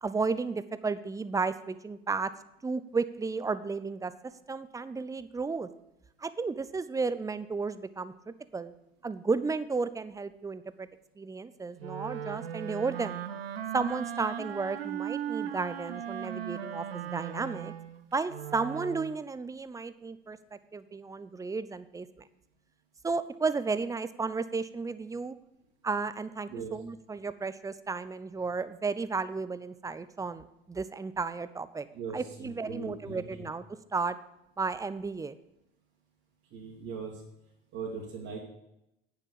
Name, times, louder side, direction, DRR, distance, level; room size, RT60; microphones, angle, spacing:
voice 1, 0.0-2.3 2.6-4.1 4.5-5.7 6.2-8.7 9.0-10.9 11.2-13.2 13.7-17.7 18.1-22.1 23.0-25.4 25.8-31.9 32.1-33.6 33.9-34.2 34.6-35.4, right 4 dB, 10° right, 14 dB, 0.6 m, -33 dB
Wind instrument woodwind instrument, 11.8-19.2, right 9 dB, 80° right, 0.7 m, -37 dB
voice 2, 31.9-33.5 36.5-37.2 37.7-38.4, right 5 dB, 50° right, -4 dB, 2.5 m, -40 dB
9.1 x 7.2 x 7.0 m, 0.86 s
figure-of-eight pair, 65°, 30 cm